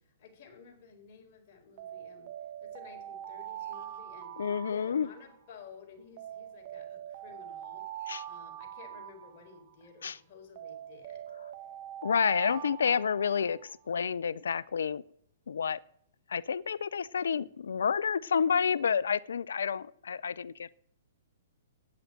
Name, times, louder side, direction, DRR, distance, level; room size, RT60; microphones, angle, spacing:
voice 1, 0.0-2.3 2.6-7.9 8.3-11.2 12.3-12.6, left 5 dB, 45° left, 1 dB, 4.2 m, -53 dB
Alarm, 1.8-5.5 6.2-9.9 10.5-13.8, right 11 dB, 50° right, 1.3 m, -43 dB
voice 2, 4.4-5.1 8.1-8.2 10.0-10.2 12.0-15.0 15.5-15.8 16.3-20.7, left 6 dB, 75° left, 21 dB, 0.5 m, -29 dB
9.3 x 7.6 x 8.9 m, 0.69 s
hypercardioid pair, 125°, 0 cm